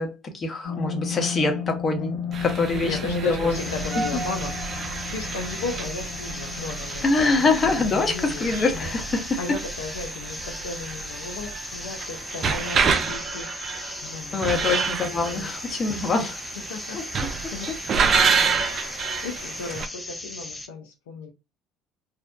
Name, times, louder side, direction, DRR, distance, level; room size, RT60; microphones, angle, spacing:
voice 1, 0.0-3.6 7.0-9.4 14.3-16.4 16.9-17.0 18.6-19.0, left 3 dB, 40° left, 0.8 m, -25 dB
sound 1, 0.6-11.5 11.9-12.0, left 7 dB, 70° left, 1.2 m, -35 dB
sound 2, 2.3-19.9, right 5 dB, 50° right, 0.4 m, -29 dB
voice 2, 2.7-4.5 5.1-8.9 9.4-13.5 14.0-14.8 15.3-15.6 16.2-16.3 16.7-18.7 19.2-21.3, left 4 dB, 85° left, 0.4 m, -36 dB
sound 3, 3.5-20.7, left 2 dB, 15° left, 0.5 m, -37 dB
2.5 x 2.1 x 2.4 m
hypercardioid pair, 65°, 0 cm